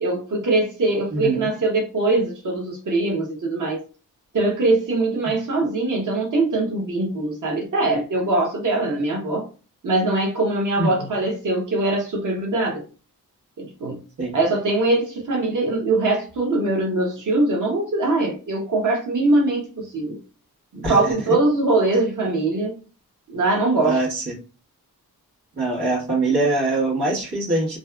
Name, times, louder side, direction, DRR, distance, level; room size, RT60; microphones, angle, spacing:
voice 1, 0.0-3.8 4.3-9.5 9.8-12.8 13.6-14.0 14.3-20.2 20.7-22.7 23.3-24.0, right 2 dB, 55° right, 0.9 m, -22 dB
voice 2, 1.1-1.5 10.8-10.9 14.2-14.3 20.8-21.1 23.8-24.3 25.6-27.8, right 2 dB, 85° right, 1.3 m, -23 dB
2.6 x 2.4 x 2.2 m
cardioid pair, 50°, 38 cm